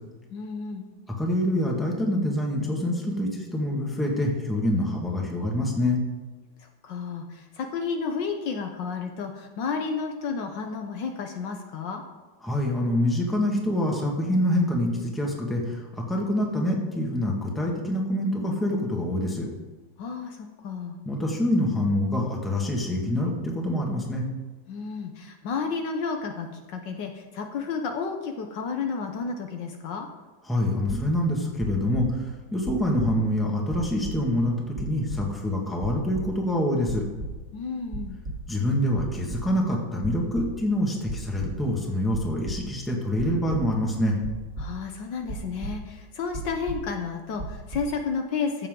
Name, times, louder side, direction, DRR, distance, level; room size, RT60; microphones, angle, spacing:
voice 1, 0.3-0.8 6.6-12.0 20.0-21.0 24.7-30.1 37.5-38.2 44.6-48.7, left 5 dB, 70° left, 4 dB, 1.5 m, -32 dB
voice 2, 1.2-6.0 12.4-19.5 21.0-24.2 30.5-37.0 38.5-44.2, left 1 dB, ahead, -1 dB, 1.6 m, -26 dB
sound 1, 30.9-31.3 31.6-32.4 32.7-33.4 33.7-34.5 34.8-35.5 35.8-36.6 36.8-37.6 37.9-38.6 38.9-39.7 40.0-40.8 41.0-41.8 42.1-42.8 43.1-45.0 45.3-46.0 46.3-47.1 47.4-47.8, right 2 dB, 35° right, 2.6 m, -36 dB
15.0 x 7.1 x 3.8 m, 1.3 s
omnidirectional pair, 2.1 m